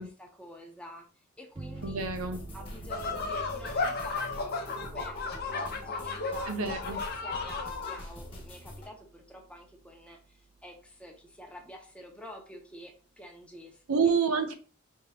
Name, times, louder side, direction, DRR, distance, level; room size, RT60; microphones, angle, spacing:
voice 1, 0.0-2.0 2.5-14.1, equal, 5° left, 1 dB, 0.8 m, -48 dB
sound 1, 1.6-10.8, right 4 dB, 25° right, 0.3 m, -50 dB
sound 2, 1.7-8.9, left 1 dB, 25° left, 1.4 m, -45 dB
voice 2, 1.8-2.4 6.5-7.0 13.9-14.5, right 5 dB, 75° right, 8 dB, 0.7 m, -28 dB
sound 3, 2.9-8.0, left 4 dB, 45° left, 0.7 m, -34 dB
4.5 x 2.9 x 2.8 m, 0.39 s
head